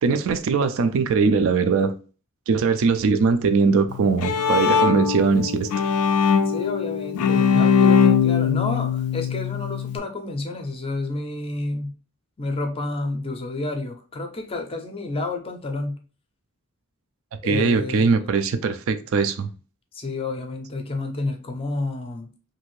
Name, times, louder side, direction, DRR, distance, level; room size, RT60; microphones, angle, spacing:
voice 1, 0.0-1.9 2.5-5.7 17.4-19.5, right 5 dB, 65° right, 0.4 m, -21 dB
Bowed string instrument, 3.9-10.0, left 6 dB, 80° left, 0.3 m, -21 dB
voice 2, 6.5-11.9 12.4-16.0 17.4-18.1 19.9-22.3, left 2 dB, 25° left, 0.5 m, -30 dB
2.7 x 2.5 x 3.1 m
head